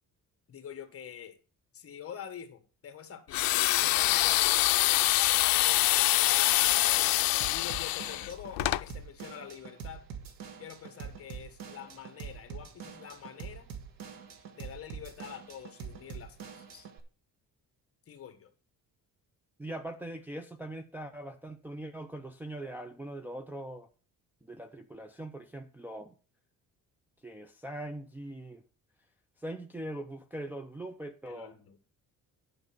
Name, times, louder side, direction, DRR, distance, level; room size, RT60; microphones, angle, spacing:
voice 1, 0.5-1.4 1.7-4.4 4.8-5.1 5.6-7.1 7.5-10.0 10.6-13.7 14.5-16.9 18.1-18.5 31.2-31.8, left 8 dB, 40° left, 1.5 m, -46 dB
sound 1, 3.3-8.8, left 18 dB, 85° left, 0.5 m, -25 dB
Drum kit / Drum, 7.4-17.0, right 6 dB, 75° right, 1.6 m, -45 dB
voice 2, 19.6-23.9 24.5-26.1 27.2-28.6 29.4-31.5, right 1 dB, 5° right, 0.6 m, -41 dB
11.0 x 5.3 x 5.9 m
cardioid pair, 155°, 34 cm